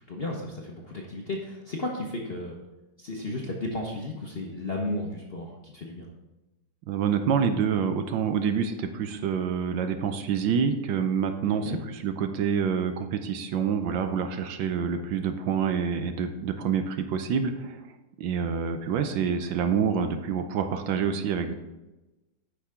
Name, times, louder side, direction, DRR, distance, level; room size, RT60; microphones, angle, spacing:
voice 1, 0.1-2.6 3.0-6.1 11.4-11.8, left 2 dB, 45° left, -1 dB, 0.8 m, -34 dB
voice 2, 6.9-11.7 12.0-17.8 18.2-21.5, right 7 dB, 75° right, 8 dB, 1.4 m, -27 dB
9.8 x 5.8 x 3.7 m, 1.0 s
omnidirectional pair, 2.1 m